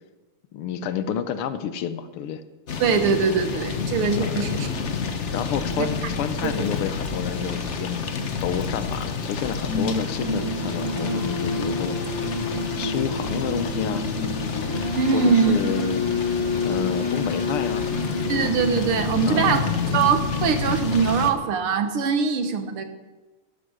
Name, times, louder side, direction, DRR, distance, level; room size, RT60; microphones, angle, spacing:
voice 1, 0.5-2.4 4.2-4.5 5.3-8.1 8.4-12.4 12.8-14.0 15.1-16.1 16.7-17.9 19.3-20.0, left 8 dB, 80° left, 12 dB, 1.8 m, -30 dB
sound 1, 2.7-21.3, left 5 dB, 45° left, 1.0 m, -29 dB
voice 2, 2.8-4.7 5.8-5.9 6.6-6.7 14.9-15.5 18.3-19.7 19.9-22.8, right 6 dB, 75° right, 8 dB, 2.1 m, -22 dB
sound 2, 9.6-19.9, left 2 dB, 10° left, 5.7 m, -29 dB
12.5 x 12.0 x 6.4 m, 1.2 s
omnidirectional pair, 2.4 m